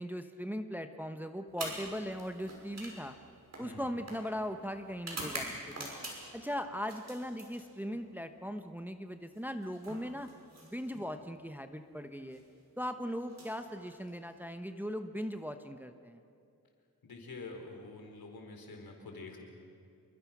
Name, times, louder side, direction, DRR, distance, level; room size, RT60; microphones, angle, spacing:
voice 1, 0.0-3.2 3.6-5.9 6.3-10.3 10.6-12.4 12.8-16.2, equal, 5° right, 7 dB, 1.0 m, -39 dB
sound 1, 1.5-6.4 6.8-8.1 9.3-11.1 12.2-12.4 13.2-14.4, right 2 dB, 45° right, 5.9 m, -45 dB
voice 2, 17.0-19.4, left 3 dB, 70° left, 2 dB, 4.5 m, -47 dB
27.5 x 23.0 x 6.1 m, 2.5 s
wide cardioid pair, 100°, 37 cm